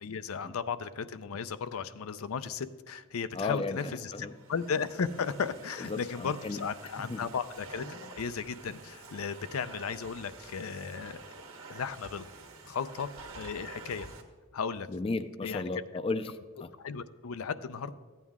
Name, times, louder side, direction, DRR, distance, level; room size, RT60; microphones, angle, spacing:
voice 1, 0.0-11.2 11.7-12.3 12.6-13.1 13.4-14.1 14.5-14.9 15.4-15.7 16.8-17.9, left 6 dB, 80° left, 12 dB, 0.5 m, -35 dB
voice 2, 3.3-4.3 5.8-6.6 7.1-7.2 7.8-8.1 14.9-16.7, left 3 dB, 25° left, 11 dB, 0.4 m, -35 dB
Domestic sounds home sounds, 3.5-14.2, right 3 dB, 75° right, 1.3 m, -49 dB
14.5 x 9.2 x 3.6 m, 1.5 s
head